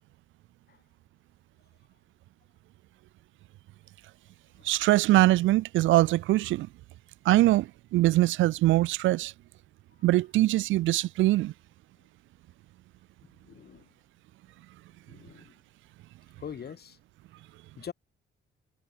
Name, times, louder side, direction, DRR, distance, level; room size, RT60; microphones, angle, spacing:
voice 1, 4.6-6.7 7.3-9.3 10.0-11.5, right 17 dB, 75° right, 0.4 m, -22 dB
voice 2, 13.4-13.9 15.1-15.5 16.4-17.0 17.8-17.9, left 8 dB, 55° left, 2.7 m, -43 dB
cardioid pair, 90°, 20 cm